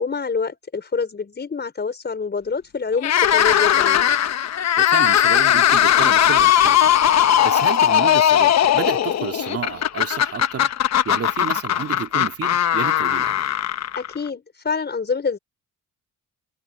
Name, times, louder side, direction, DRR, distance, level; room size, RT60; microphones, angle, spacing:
voice 1, 0.0-4.1 14.0-15.4, left 5 dB, 35° left, 5.4 m, -26 dB
sound 1, 3.0-14.3, left 10 dB, 60° left, 1.2 m, -18 dB
voice 2, 4.8-6.9 7.4-10.7 11.0-13.4, right 7 dB, 50° right, 2.8 m, -31 dB
cardioid pair, 90°, 30 cm